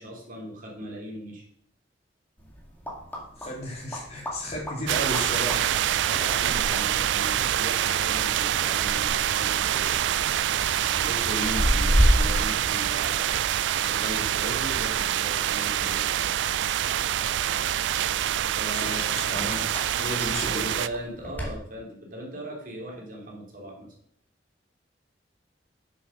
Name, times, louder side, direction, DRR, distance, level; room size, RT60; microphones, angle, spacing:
voice 1, 0.0-1.4 6.0-10.0 11.0-13.4 13.8-16.1 18.6-19.2 20.5-23.9, equal, 50° right, -1 dB, 3.0 m, -38 dB
sound 1, 2.4-21.5, equal, 10° left, 2.3 m, -32 dB
voice 2, 3.4-5.8 18.7-19.6 20.0-20.6, left 1 dB, 35° left, -2 dB, 3.4 m, -34 dB
sound 2, 4.9-20.9, right 11 dB, 75° right, 0.3 m, -26 dB
sound 3, 5.7-12.7, left 1 dB, 75° left, 1.0 m, -48 dB
7.5 x 7.0 x 6.2 m, 0.63 s
head